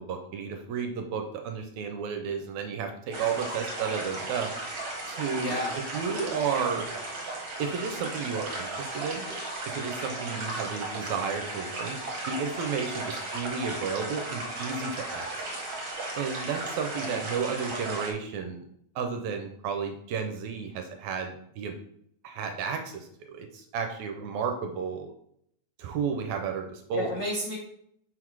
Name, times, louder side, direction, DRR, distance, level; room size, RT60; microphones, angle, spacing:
voice 1, 0.0-4.5 5.1-6.9 7.6-9.3 9.7-12.0 12.3-15.3 16.1-18.7 19.0-21.7 22.2-25.1 25.8-27.1, right 6 dB, 75° right, 5 dB, 1.8 m, -32 dB
sound 1, 3.1-18.1, right 2 dB, 50° right, 1.7 m, -35 dB
voice 2, 5.3-5.7 10.1-10.4 17.0-17.2 26.9-27.5, left 1 dB, 70° left, -3 dB, 1.0 m, -32 dB
6.2 x 3.9 x 4.6 m, 0.71 s
omnidirectional pair, 3.6 m